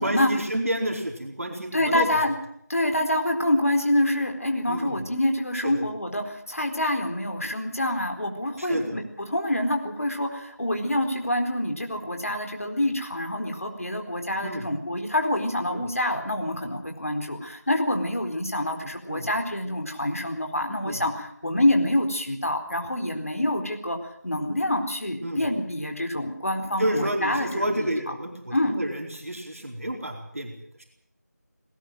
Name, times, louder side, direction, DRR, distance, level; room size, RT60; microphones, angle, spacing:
voice 1, 0.0-2.1 4.7-5.0 5.6-5.8 8.6-9.0 14.4-14.7 15.7-15.9 19.1-19.3 20.8-21.0 25.2-25.4 26.8-30.5, right 1 dB, 55° right, 2 dB, 4.7 m, -30 dB
voice 2, 1.7-2.3 2.7-27.9 28.5-28.8, left 1 dB, 55° left, 4 dB, 4.3 m, -26 dB
19.5 x 19.0 x 7.8 m, 0.70 s
figure-of-eight pair, 175°, 9 cm